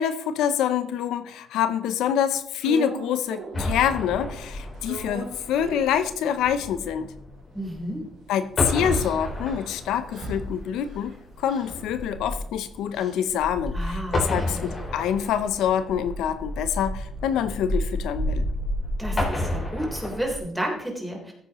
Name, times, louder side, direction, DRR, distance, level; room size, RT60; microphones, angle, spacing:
voice 1, 0.0-7.1 8.3-18.5, left 9 dB, 85° left, 11 dB, 0.6 m, -26 dB
sound 1, 2.6-3.8 4.1-6.7 7.1-7.2 7.4-11.9 12.2-16.3, right 4 dB, 85° right, 2.2 m, -42 dB
sound 2, 3.5-8.2 8.5-20.4, left 1 dB, 30° left, 3.6 m, -31 dB
voice 2, 7.5-8.1 13.7-14.7 19.0-21.3, right 1 dB, 5° right, 0 dB, 3.7 m, -32 dB
sound 3, 8.9-11.2 11.4-11.9 12.9-13.2 14.6-14.9, right 1 dB, 60° right, 3.6 m, -39 dB
15.0 x 8.7 x 3.0 m, 0.69 s
cardioid pair, 90°, 0 cm